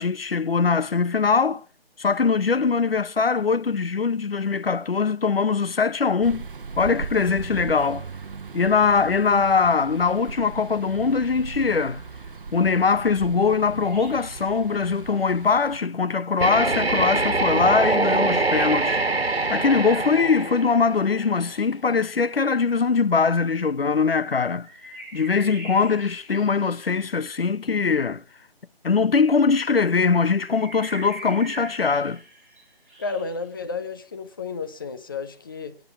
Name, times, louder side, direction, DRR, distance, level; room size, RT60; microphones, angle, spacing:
voice 1, 0.0-1.6 2.0-6.5 6.8-8.1 8.5-12.0 12.5-19.0 19.5-24.7 25.1-28.2 28.8-32.2, left 5 dB, 70° left, 0.9 m, -22 dB
sound 1, 6.2-15.8, right 5 dB, 60° right, 1.0 m, -38 dB
sound 2, 13.8-14.6 18.0-20.8 21.4-22.2 24.6-27.3 30.4-33.5, right 2 dB, 5° right, 7.4 m, -41 dB
sound 3, 16.4-21.3, right 3 dB, 90° right, 1.5 m, -24 dB
voice 2, 33.0-35.8, left 4 dB, 20° left, 0.8 m, -32 dB
23.5 x 9.3 x 5.8 m
figure-of-eight pair, 155°, 30 cm